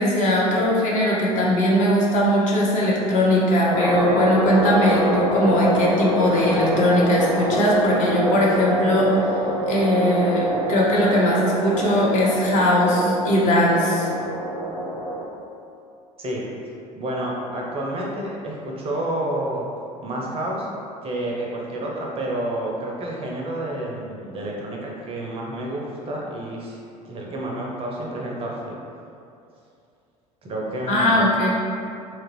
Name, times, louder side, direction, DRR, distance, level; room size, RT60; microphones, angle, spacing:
voice 1, 0.0-9.3 9.7-14.1 30.9-31.5, left 1 dB, 40° left, -4 dB, 0.7 m, -20 dB
sound 1, 3.7-15.2, right 1 dB, 75° left, 0.8 m, -25 dB
voice 2, 16.2-19.7 20.0-20.7 21.0-26.8 27.0-28.8 30.4-31.2, right 1 dB, 30° right, -3 dB, 0.5 m, -29 dB
2.9 x 2.4 x 2.9 m, 2.5 s
figure-of-eight pair, 65°, 20 cm